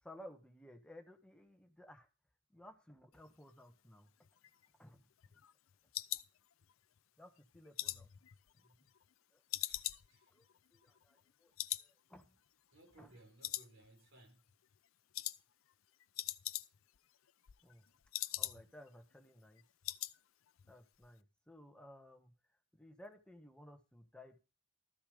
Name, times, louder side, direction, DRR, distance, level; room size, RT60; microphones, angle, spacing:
voice 1, 0.0-2.1 2.5-4.1 4.8-5.1 7.2-8.1 8.6-8.8 9.3-9.4 10.3-10.4 10.7-11.5 11.8-12.3 13.0-13.1 17.6-17.8 18.4-19.6 20.7-22.3 22.7-24.4, left 1 dB, 5° left, 1.2 m, -57 dB
sound 1, 4.2-7.0 7.4-9.1 9.5-11.3 11.6-11.9 12.2-12.3 12.7-13.2 13.4-14.2 14.5-14.8 15.1-15.4 15.7-15.8 16.0-17.0 17.3-18.9 19.2-19.3 19.6-20.2 20.5-20.7 21.0-21.1, left 16 dB, 85° left, 0.5 m, -43 dB
voice 2, 9.6-10.3 12.7-14.4, right 2 dB, 75° right, 4.1 m, -63 dB
13.5 x 7.1 x 5.1 m
head